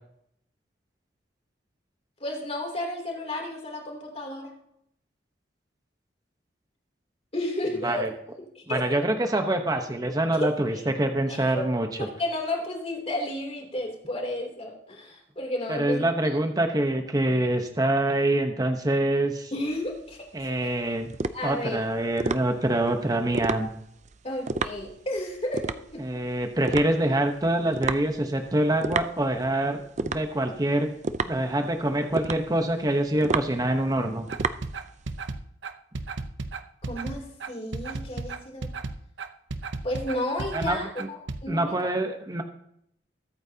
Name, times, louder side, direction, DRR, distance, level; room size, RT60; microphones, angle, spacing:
voice 1, 2.2-4.5 7.3-8.0 8.4-8.9 10.3-10.5 11.3-11.7 12.0-16.0 19.5-20.5 21.3-21.8 24.2-26.0 36.8-38.7 39.8-41.8, left 1 dB, 35° left, 1 dB, 3.1 m, -32 dB
voice 2, 8.7-11.9 15.7-19.5 20.3-21.1 21.4-23.7 26.0-30.9 31.2-34.3 40.5-41.1 41.5-42.4, right 1 dB, 20° right, 5 dB, 1.0 m, -25 dB
sound 1, 19.7-35.3, right 4 dB, 40° right, 0.5 m, -33 dB
sound 2, 34.3-41.4, right 3 dB, 85° right, 0.8 m, -34 dB
22.0 x 8.8 x 2.9 m, 0.73 s
head